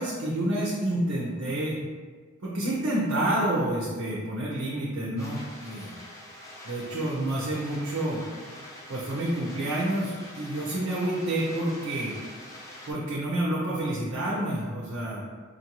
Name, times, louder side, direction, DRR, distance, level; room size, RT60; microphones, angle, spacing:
voice 1, 0.0-1.8 2.4-5.9 6.6-8.2 8.9-12.2 12.9-15.2, right 1 dB, 80° right, -5 dB, 0.7 m, -29 dB
sound 1, 5.2-12.9, left 1 dB, 15° left, 0.6 m, -45 dB
4.5 x 2.6 x 2.9 m, 1.5 s
head